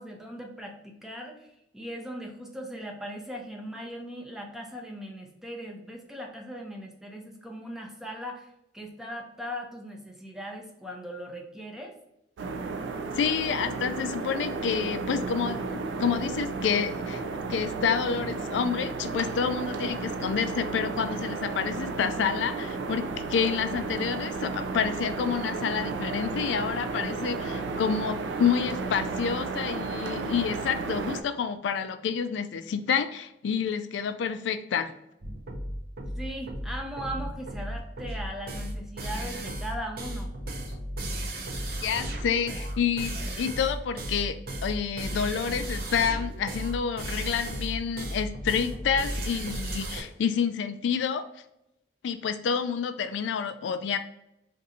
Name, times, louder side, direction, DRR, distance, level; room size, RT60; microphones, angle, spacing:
voice 1, 0.0-8.5 8.7-12.0 36.2-40.3, equal, 5° right, 1 dB, 0.5 m, -39 dB
sound 1, 12.4-31.2, right 4 dB, 90° right, 0.4 m, -33 dB
voice 2, 13.2-17.2 17.5-34.9 41.8-51.3 52.0-54.0, left 7 dB, 85° left, 10 dB, 0.3 m, -29 dB
sound 2, 35.2-50.0, right 1 dB, 55° right, 0.6 m, -34 dB
2.6 x 2.6 x 4.1 m, 0.83 s
head